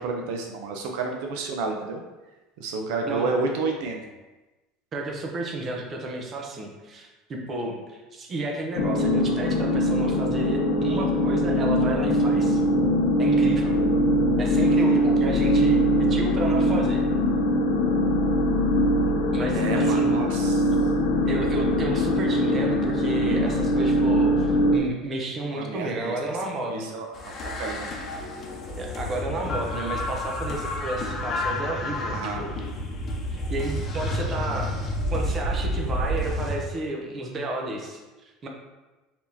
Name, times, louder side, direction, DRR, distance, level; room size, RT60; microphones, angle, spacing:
voice 1, 0.0-2.0 2.6-4.0 14.5-15.0 19.5-20.7 25.5-26.4 26.7-27.9 32.1-32.4, right 4 dB, 70° right, 2 dB, 0.5 m, -31 dB
voice 2, 4.9-12.6 13.2-13.8 14.4-17.0 19.3-20.2 21.2-26.9 28.7-32.5 33.3-34.7 35.1-38.5, right 2 dB, 30° right, 1 dB, 0.7 m, -32 dB
sound 1, 8.8-24.8, equal, 70° left, 0.5 m, -22 dB
sound 2, 27.1-36.6, left 1 dB, 30° left, 0.7 m, -30 dB
4.6 x 3.6 x 2.7 m, 1.1 s
supercardioid pair, 140°, 0 cm